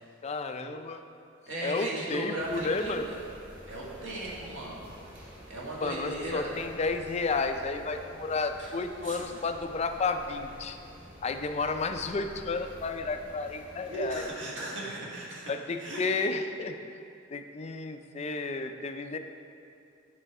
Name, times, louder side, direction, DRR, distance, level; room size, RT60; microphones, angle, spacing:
voice 1, 0.2-1.0 1.6-3.1 5.8-10.8 11.2-14.3 15.5-17.0 17.3-19.2, left 3 dB, 30° left, 7 dB, 0.4 m, -32 dB
voice 2, 1.5-2.9 3.7-4.8 5.5-6.5 8.6-8.7 9.0-9.3 13.9-15.5 15.8-16.0, right 1 dB, 70° right, -5 dB, 1.9 m, -36 dB
sound 1, 2.4-14.3, equal, 40° right, 2.0 m, -49 dB
9.0 x 5.0 x 4.8 m, 2.5 s
head